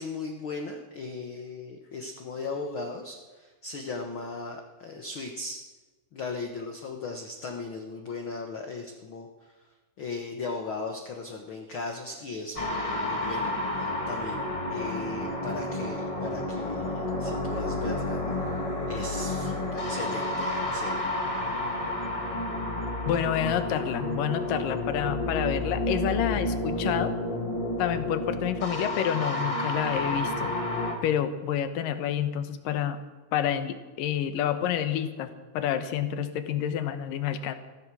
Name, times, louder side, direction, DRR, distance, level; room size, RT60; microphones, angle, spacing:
voice 1, 0.0-5.7 6.1-9.7 10.0-18.6 18.9-21.0, left 3 dB, 60° left, 3 dB, 1.3 m, -37 dB
sound 1, 12.5-30.9, left 1 dB, 25° left, 0.8 m, -30 dB
voice 2, 23.1-27.2 27.8-30.5 31.0-33.0 33.3-37.6, left 10 dB, 80° left, 10 dB, 2.7 m, -29 dB
15.0 x 14.5 x 6.2 m, 1.2 s
omnidirectional pair, 3.9 m